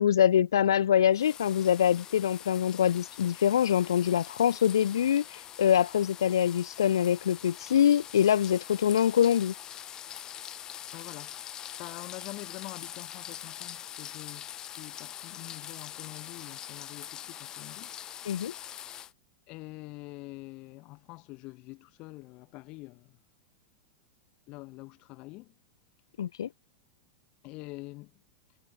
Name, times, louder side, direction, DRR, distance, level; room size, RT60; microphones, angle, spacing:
voice 1, 0.0-9.5 18.2-18.5 26.2-26.5, left 9 dB, 85° left, 1.2 m, -24 dB
sound 1, 1.1-19.1, left 10 dB, 30° left, 1.5 m, -44 dB
voice 2, 10.9-17.9 19.5-23.1 24.5-25.5 27.4-28.1, left 23 dB, 45° left, 5.0 m, -45 dB
hypercardioid pair, 115°, 2 cm